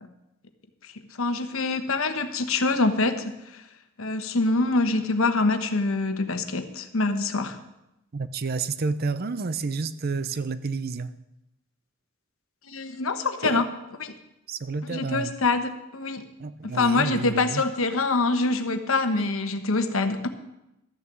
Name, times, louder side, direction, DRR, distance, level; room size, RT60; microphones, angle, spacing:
voice 1, 1.2-3.6 4.0-7.6 12.7-13.7 14.0-14.1 14.8-16.3 16.6-20.3, left 3 dB, 75° left, 1.1 m, -25 dB
voice 2, 8.1-11.1 13.4-13.7 14.5-15.3 16.4-17.6, right 4 dB, 45° right, 0.5 m, -30 dB
13.0 x 6.8 x 7.4 m
head